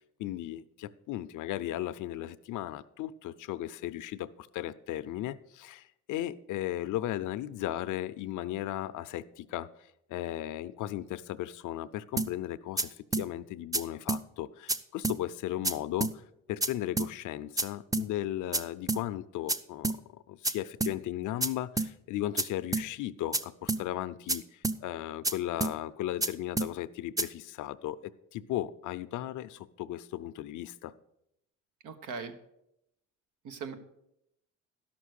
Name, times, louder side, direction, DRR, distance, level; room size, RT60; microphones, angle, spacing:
voice 1, 0.2-9.7 10.1-16.1 16.5-20.0 20.3-30.9, left 13 dB, 80° left, 15 dB, 0.6 m, -36 dB
sound 1, 12.2-12.3 12.8-12.9 13.1-13.3 13.7-13.8 14.1-14.2 14.7-14.8 15.0-15.2 15.6-15.7 16.0-16.1 16.6-16.7 17.0-17.1 17.6-17.7 17.9-18.1 18.5-18.6 18.9-19.0 19.5-19.6 19.8-20.0 20.4-20.5 20.8-20.9 21.4-21.5 21.8-21.9 22.4-22.5 22.7-22.9 23.3-23.4 23.7-23.8 24.3-24.4 24.6-24.8 25.2-25.3 25.6-25.7 26.2-26.3 26.6-26.7 27.2-27.3, right 3 dB, 10° right, 0.5 m, -29 dB
voice 2, 31.8-32.3 33.4-33.8, right 5 dB, 85° right, 8 dB, 1.2 m, -39 dB
12.0 x 6.0 x 6.4 m, 0.81 s
cardioid pair, 90°, 30 cm